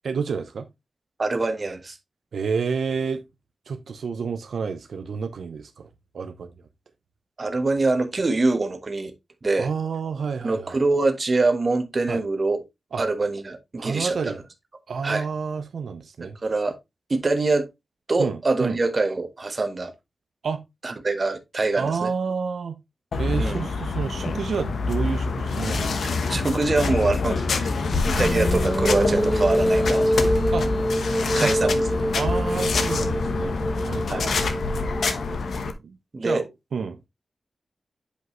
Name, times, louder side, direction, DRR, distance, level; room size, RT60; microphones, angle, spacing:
voice 1, 0.0-0.7 2.3-3.2 3.7-5.9 6.1-6.5 9.6-10.8 12.1-12.2 12.9-13.0 13.8-14.4 14.9-16.4 18.2-18.8 20.4-20.6 21.8-22.8 23.2-26.1 30.5-30.7 31.4-31.7 32.1-33.6 33.8-34.5 35.8-36.0 36.2-37.0, right 5 dB, 80° right, 0.7 m, -29 dB
voice 2, 1.2-2.0 7.4-9.1 9.4-9.7 10.4-12.6 13.0-14.3 15.0-15.3 16.4-16.7 17.1-17.7 18.1-19.9 20.8-22.1 23.4-23.6 26.3-27.4 28.0-30.3 31.3-31.8 32.5-32.6 34.1-34.3 36.1-36.4, right 3 dB, 35° right, 1.2 m, -24 dB
sound 1, 23.1-35.7, left 4 dB, 80° left, 1.0 m, -26 dB
sound 2, 25.6-30.8, left 1 dB, 40° left, 2.4 m, -33 dB
sound 3, 28.2-35.6, equal, 5° right, 0.9 m, -25 dB
8.2 x 5.1 x 3.0 m
wide cardioid pair, 140°, 0 cm